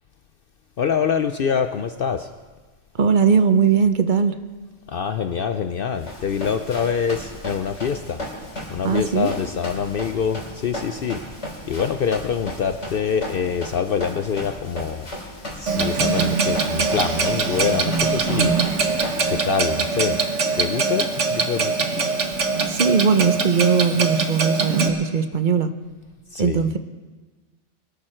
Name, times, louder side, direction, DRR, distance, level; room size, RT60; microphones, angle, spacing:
voice 1, 0.8-2.3 4.9-8.2 8.7-11.2 11.7-15.1 15.5-18.5 19.3-20.2 20.6-22.1 26.3-26.6, left 7 dB, 55° left, 9 dB, 0.7 m, -25 dB
voice 2, 3.0-4.4 8.8-9.3 22.7-25.7 26.4-26.8, right 6 dB, 45° right, 10 dB, 0.9 m, -19 dB
Run, 6.0-19.3, left 1 dB, 80° left, 3.7 m, -35 dB
Clock, 15.7-24.9, right 4 dB, 80° right, 1.6 m, -22 dB
23.0 x 12.5 x 4.4 m, 1.3 s
omnidirectional pair, 1.2 m